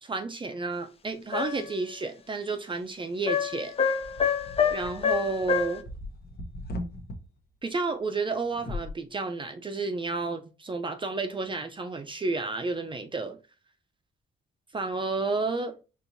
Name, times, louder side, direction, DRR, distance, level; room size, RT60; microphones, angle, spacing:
voice 1, 0.0-3.8 4.7-5.8 7.6-13.4 14.7-15.8, right 3 dB, 25° right, 0.5 m, -31 dB
sound 1, 1.3-1.7 3.3-5.8, left 7 dB, 30° left, 0.5 m, -27 dB
sound 2, 4.0-7.2 8.5-8.9, left 1 dB, 55° left, 0.9 m, -39 dB
4.5 x 3.0 x 2.7 m
cardioid pair, 90°, 20 cm